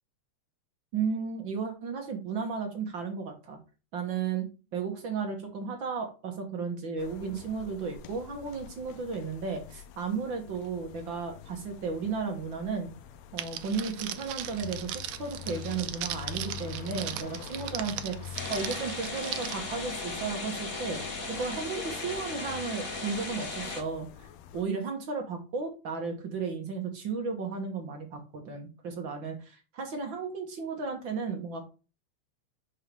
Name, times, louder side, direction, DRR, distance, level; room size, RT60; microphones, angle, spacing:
voice 1, 0.9-3.6 3.9-12.9 13.3-21.0 21.3-24.3 24.5-31.6, right 5 dB, 50° right, 3 dB, 1.6 m, -34 dB
sound 1, 7.0-24.6, left 9 dB, 75° left, 1.8 m, -46 dB
Crackle, 13.4-19.5, right 12 dB, 75° right, 1.6 m, -38 dB
sound 2, 18.3-23.8, left 3 dB, 35° left, 1.5 m, -37 dB
5.5 x 4.6 x 5.2 m, 0.32 s
omnidirectional pair, 3.4 m